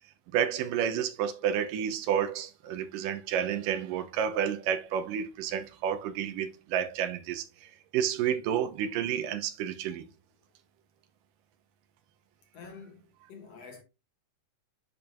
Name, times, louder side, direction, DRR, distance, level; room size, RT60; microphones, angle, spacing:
voice 1, 0.3-10.1, right 9 dB, 80° right, 2.5 m, -30 dB
voice 2, 12.5-13.8, left 5 dB, 55° left, 2.1 m, -48 dB
10.5 x 4.5 x 2.4 m
omnidirectional pair, 3.9 m